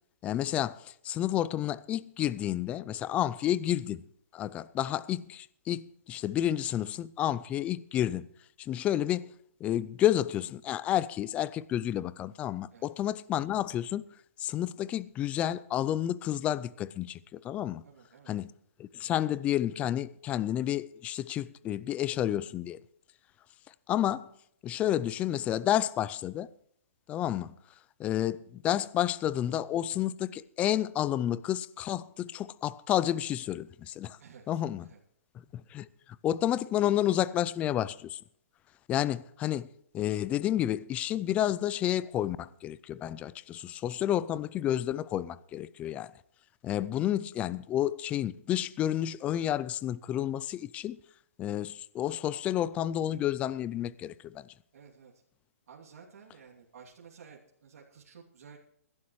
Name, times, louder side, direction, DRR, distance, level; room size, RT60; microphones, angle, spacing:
voice 1, 0.2-4.0 4.3-8.3 8.6-9.3 9.6-14.0 14.4-17.8 18.3-18.5 18.8-22.8 23.9-24.3 24.6-26.5 27.1-27.5 28.0-34.2 34.5-34.8 35.5-35.9 36.2-38.2 38.9-39.7 39.9-46.1 46.6-51.0 51.4-54.5, left 12 dB, 15° left, 0.4 m, -30 dB
voice 2, 17.8-18.3 34.2-34.5 34.8-35.0 54.7-55.1 55.7-58.6, right 6 dB, 70° right, 2.8 m, -53 dB
21.0 x 11.5 x 3.2 m
hypercardioid pair, 155°, 8 cm